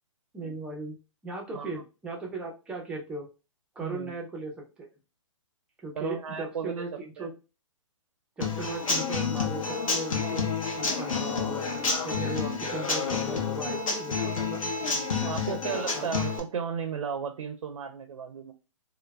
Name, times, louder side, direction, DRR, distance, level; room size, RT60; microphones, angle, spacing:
voice 1, 0.3-3.3 3.8-4.9 5.8-7.3 8.4-11.6 12.0-14.6 15.2-15.6 15.9-16.1, right 2 dB, 5° right, -1 dB, 0.4 m, -38 dB
voice 2, 3.8-4.1 5.9-6.8 7.2-7.3 15.3-18.5, right 6 dB, 85° right, 6 dB, 0.4 m, -34 dB
Human voice / Acoustic guitar / Drum, 8.4-16.4, left 5 dB, 80° left, 0.7 m, -29 dB
3.1 x 2.0 x 2.2 m, 0.31 s
hypercardioid pair, 145°, 17 cm